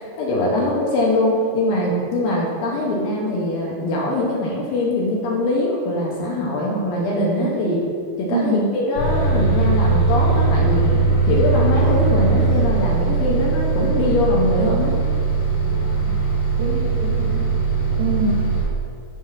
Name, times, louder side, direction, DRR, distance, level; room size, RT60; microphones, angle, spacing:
voice 1, 0.2-7.8 8.2-11.0 11.3-14.9, left 1 dB, 75° left, -3 dB, 2.4 m, -22 dB
voice 2, 8.3-8.7 16.0-16.2 16.6-17.5 18.0-18.5, right 2 dB, 80° right, 0 dB, 2.3 m, -25 dB
Bus, 8.9-18.6, right 4 dB, 50° left, 2.0 m, -19 dB
6.4 x 3.6 x 6.1 m, 2.2 s
omnidirectional pair, 4.7 m